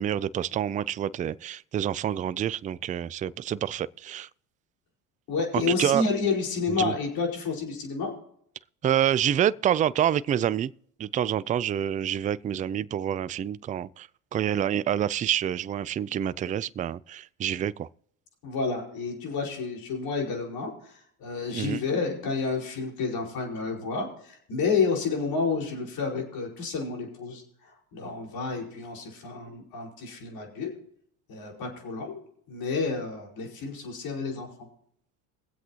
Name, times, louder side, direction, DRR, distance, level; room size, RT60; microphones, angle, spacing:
voice 1, 0.0-4.3 5.5-6.0 6.8-6.9 8.8-10.7 11.0-17.9 21.5-21.8, right 10 dB, 20° right, 0.3 m, -27 dB
voice 2, 5.3-8.1 18.4-30.7 31.3-34.7, left 4 dB, 55° left, 4.9 m, -30 dB
22.5 x 7.9 x 3.0 m
hypercardioid pair, 75°, 42 cm